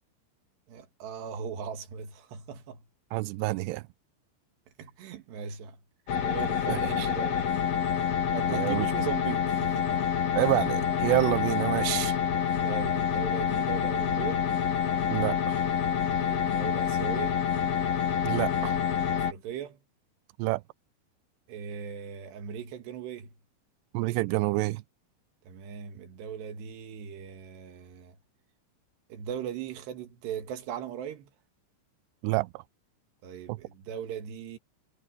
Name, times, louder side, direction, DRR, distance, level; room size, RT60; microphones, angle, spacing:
voice 1, 0.7-2.8 4.8-5.8 6.2-7.5 8.3-10.0 10.4-10.5 12.6-14.5 16.1-17.4 19.1-19.8 21.5-23.3 25.5-28.2 29.1-31.3 33.2-34.6, right 8 dB, 65° right, 3.8 m, -39 dB
voice 2, 3.1-3.8 6.7-7.1 8.5-8.9 10.3-12.2 15.1-15.6 18.3-18.8 20.4-20.6 23.9-24.8 32.2-32.6 33.5-33.6, right 20 dB, 85° right, 2.4 m, -28 dB
sound 1, 6.1-19.3, left 8 dB, 50° left, 1.9 m, -27 dB
omnidirectional pair, 5.5 m